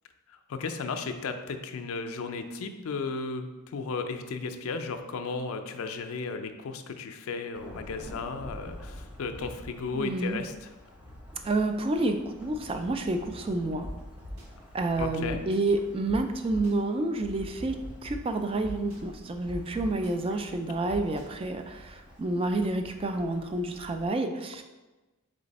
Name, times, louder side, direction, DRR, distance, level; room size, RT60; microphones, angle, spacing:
voice 1, 0.3-10.7 15.0-15.4, left 4 dB, 75° left, 6 dB, 0.4 m, -35 dB
Thunderstorm / Rain, 7.5-24.1, equal, 5° right, 0.7 m, -48 dB
voice 2, 9.9-10.4 11.4-13.9 14.7-17.7 18.0-24.6, right 2 dB, 25° right, 7 dB, 0.3 m, -29 dB
sound 1, 13.8-13.9 14.2-14.4 14.9-15.6 16.1-16.2 16.5-16.7 17.2-18.1 18.6-19.0 19.5-20.1 20.9-21.2, left 1 dB, 70° right, 1.0 m, -41 dB
4.0 x 3.3 x 4.0 m, 1.1 s
head